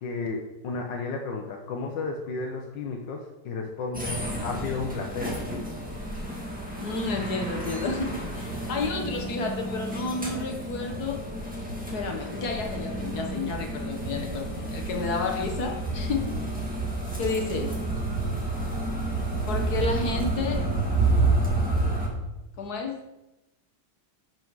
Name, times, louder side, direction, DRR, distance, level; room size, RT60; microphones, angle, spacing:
voice 1, 0.0-5.4, left 4 dB, 75° left, 2 dB, 1.6 m, -33 dB
sound 1, 3.9-22.1, right 2 dB, 5° right, 1.8 m, -30 dB
voice 2, 6.8-11.3 11.9-16.5 17.2-17.8 19.5-20.7 22.6-23.1, left 3 dB, 60° left, 4 dB, 1.7 m, -31 dB
10.5 x 6.3 x 4.7 m, 0.94 s
omnidirectional pair, 2.0 m